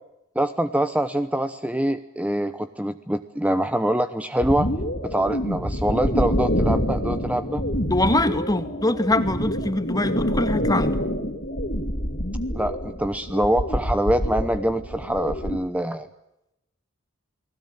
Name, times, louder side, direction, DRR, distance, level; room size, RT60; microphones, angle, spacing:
voice 1, 0.3-4.7 5.0-7.6 12.5-16.1, right 1 dB, 5° right, 10 dB, 0.9 m, -24 dB
sound 1, 4.4-15.6, equal, 50° left, 3.0 m, -26 dB
voice 2, 7.9-11.0, left 1 dB, 20° left, 9 dB, 2.0 m, -23 dB
29.5 x 20.0 x 8.8 m, 0.89 s
head